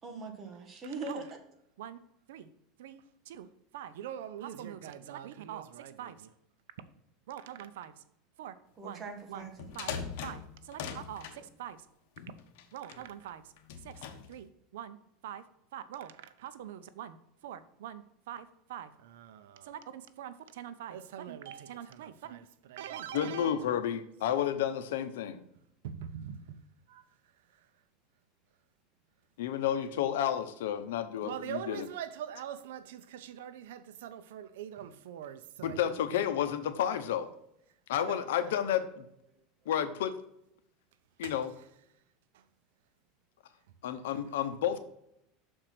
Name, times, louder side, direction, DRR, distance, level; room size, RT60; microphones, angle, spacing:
voice 1, 0.0-1.4 8.8-9.6, right 3 dB, 25° right, 1.5 m, -41 dB
voice 2, 2.8-3.5 3.7-6.3 7.3-8.0 8.4-8.6 8.8-9.9 10.2-11.8 12.7-13.5 13.8-15.0 15.2-15.4 15.7-17.2 17.4-23.8 25.8-26.6 26.9-27.1 27.5-27.7 31.2-36.2 38.0-38.5 41.2-41.3 42.3-42.4, right 10 dB, 85° right, 0.7 m, -43 dB
sound 1, 9.4-11.4 12.2-13.0 13.6-14.4, left 7 dB, 70° left, 1.1 m, -41 dB
voice 3, 23.1-25.4 29.4-31.8 35.6-37.3 37.9-39.1 39.7-40.1 41.2-41.5 43.8-44.8, left 10 dB, 90° left, 0.8 m, -31 dB
6.6 x 4.4 x 5.9 m
supercardioid pair, 140°, 0 cm